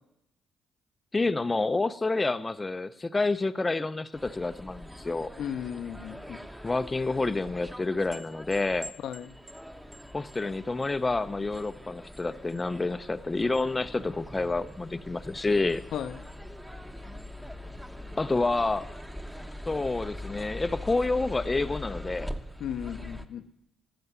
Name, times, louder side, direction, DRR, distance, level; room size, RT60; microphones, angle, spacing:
voice 1, 1.1-5.3 6.6-8.9 10.1-15.8 18.2-18.9 19.7-22.3, left 3 dB, 20° left, 0.5 m, -28 dB
sound 1, 4.1-23.2, left 1 dB, 5° right, 0.9 m, -42 dB
voice 2, 5.4-6.4 9.0-9.3 15.9-16.2 22.6-23.5, left 9 dB, 75° left, 0.6 m, -35 dB
14.0 x 6.7 x 9.4 m
cardioid pair, 90°, 0 cm